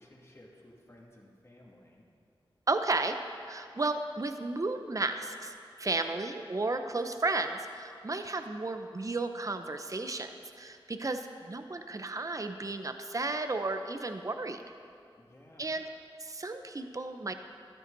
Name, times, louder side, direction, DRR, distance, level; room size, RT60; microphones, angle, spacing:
voice 1, 0.0-2.0 15.2-15.9, left 1 dB, 30° left, -2 dB, 2.4 m, -56 dB
voice 2, 2.7-3.2 3.5-5.5 5.8-10.3 10.6-14.6 15.6-15.8 16.2-17.3, right 3 dB, 40° right, 7 dB, 0.8 m, -33 dB
14.0 x 12.0 x 4.0 m, 2.4 s
cardioid pair, 50°, 9 cm